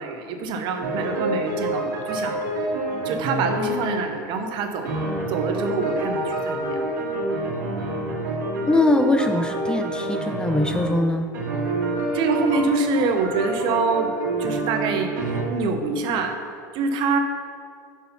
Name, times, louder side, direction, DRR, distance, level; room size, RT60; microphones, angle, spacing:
voice 1, 0.0-2.6 3.0-4.9 5.3-6.9 12.1-14.1 14.4-15.1 15.5-16.4 16.7-17.2, right 4 dB, 55° right, 5 dB, 0.9 m, -25 dB
sound 1, 0.8-4.1 4.9-11.1 11.3-15.4, right 1 dB, 85° right, 1.7 m, -28 dB
voice 2, 8.7-11.3, left 2 dB, 10° left, 5 dB, 0.4 m, -21 dB
6.2 x 5.5 x 5.6 m, 2.3 s
supercardioid pair, 110°, 10 cm